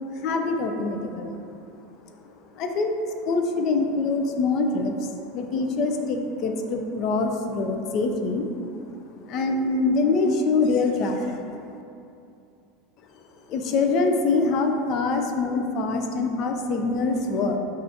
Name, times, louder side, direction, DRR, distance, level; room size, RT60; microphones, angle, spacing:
voice 1, 0.2-1.4 2.5-3.0 3.2-8.5 9.3-11.7 13.5-17.6, left 3 dB, 50° left, 4 dB, 0.4 m, -24 dB
5.6 x 2.4 x 2.6 m, 2.6 s
supercardioid pair, 115°, 0 cm